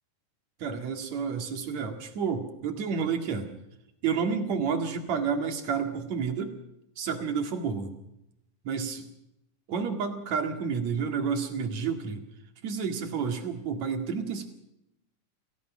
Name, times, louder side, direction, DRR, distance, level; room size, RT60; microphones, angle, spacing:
voice 1, 0.6-3.5 4.0-6.6 7.0-7.9 8.6-9.1 9.7-12.3 12.6-14.5, right 6 dB, 60° right, 5 dB, 3.2 m, -30 dB
27.5 x 16.0 x 6.2 m, 0.85 s
omnidirectional pair, 3.7 m